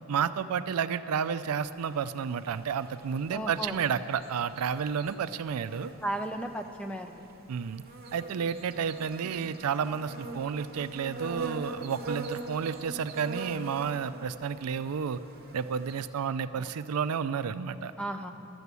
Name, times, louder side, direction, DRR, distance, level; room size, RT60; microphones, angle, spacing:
voice 1, 0.1-5.9 7.5-7.8 8.1-15.2 15.5-17.9, right 7 dB, 85° right, 13 dB, 0.4 m, -31 dB
sound 1, 1.4-16.1, right 3 dB, 45° right, 0.9 m, -43 dB
voice 2, 3.3-3.8 6.0-7.2 16.6-16.7 18.0-18.3, right 1 dB, 5° left, 5 dB, 0.5 m, -35 dB
12.5 x 7.0 x 8.2 m, 2.9 s
head